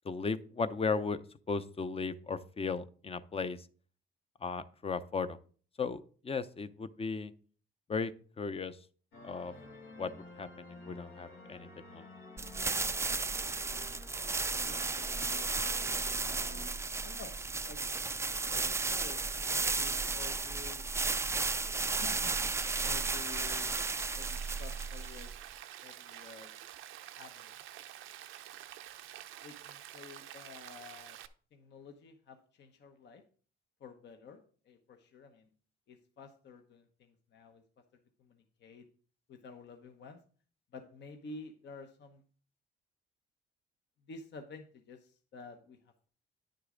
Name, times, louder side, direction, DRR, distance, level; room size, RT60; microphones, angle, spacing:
voice 1, 0.0-1.2 1.5-3.7 4.4-5.4 5.8-7.3 7.9-8.1 8.4-8.8 9.2-9.5 10.0-12.1, left 4 dB, 30° left, 13 dB, 0.6 m, -36 dB
sound 1, 9.1-16.7, left 3 dB, 85° left, 2.2 m, -51 dB
sound 2, 12.4-25.5, right 4 dB, 15° right, 0.3 m, -34 dB
voice 2, 14.6-15.5 16.2-17.3 17.6-17.8 18.5-20.9 21.9-23.8 24.1-25.3 25.8-26.5 27.1-27.6 29.4-31.2 31.5-33.2 33.8-35.5 35.9-37.6 38.2-38.9 39.3-40.2 40.7-42.2 44.0-46.1, left 4 dB, 60° left, 6 dB, 1.0 m, -51 dB
Rain, 22.6-31.3, right 12 dB, 85° right, 0.6 m, -49 dB
9.7 x 6.7 x 3.8 m, 0.43 s
cardioid pair, 90°, 20 cm